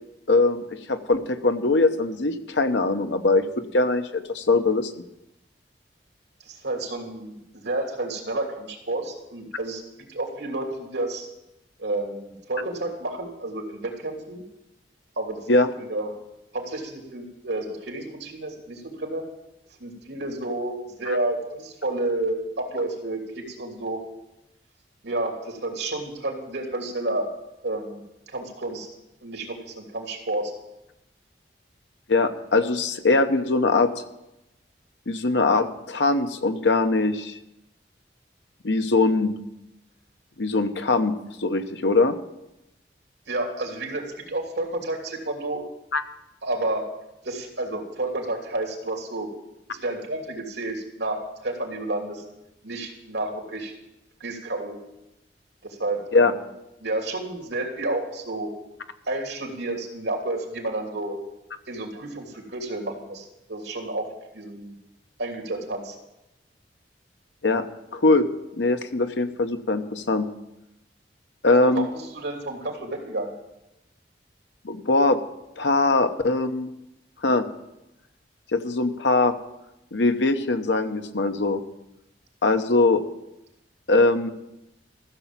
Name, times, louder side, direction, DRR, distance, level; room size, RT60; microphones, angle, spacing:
voice 1, 0.3-3.4 3.7-4.9 15.5-15.7 32.1-33.9 35.1-37.4 38.6-39.3 40.4-41.1 41.4-42.2 45.9-46.0 56.1-56.3 67.4-67.6 67.9-68.3 68.6-70.3 71.4-71.9 74.6-75.2 75.6-76.7 77.2-77.5 78.5-79.4 79.9-81.6 82.4-83.0 83.9-84.3, left 3 dB, 85° left, 8 dB, 1.0 m, -21 dB
voice 2, 6.5-9.8 10.1-11.3 11.8-14.4 15.2-15.5 15.9-16.1 16.5-19.2 19.8-24.0 25.0-27.3 27.6-28.0 28.3-28.9 29.2-30.5 43.3-45.6 46.4-46.8 47.2-49.3 49.7-52.2 52.6-53.7 54.2-54.8 55.6-56.3 56.8-58.5 59.1-61.2 61.7-64.1 64.3-64.7 65.2-66.0 71.6-71.9 72.1-73.3, right 2 dB, 80° right, 1 dB, 2.9 m, -30 dB
14.5 x 7.0 x 7.4 m, 0.91 s
head